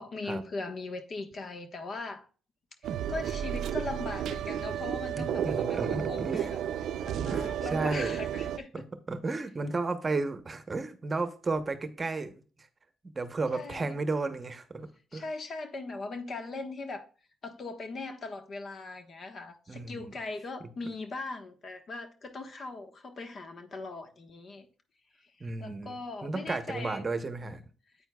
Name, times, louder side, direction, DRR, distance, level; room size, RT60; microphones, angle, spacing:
voice 1, 0.0-2.3 2.8-8.8 13.5-14.0 15.1-17.1 17.4-24.7 25.2-27.0, left 3 dB, 50° left, 1.3 m, -40 dB
sound 1, 2.8-8.6, right 9 dB, 75° right, 0.5 m, -32 dB
voice 2, 5.2-6.5 7.3-8.2 8.7-8.8 9.1-12.3 13.1-15.2 19.7-20.1 25.4-25.9 26.2-27.6, right 3 dB, 30° right, 0.9 m, -33 dB
9.0 x 8.5 x 2.3 m
cardioid pair, 90°, 0 cm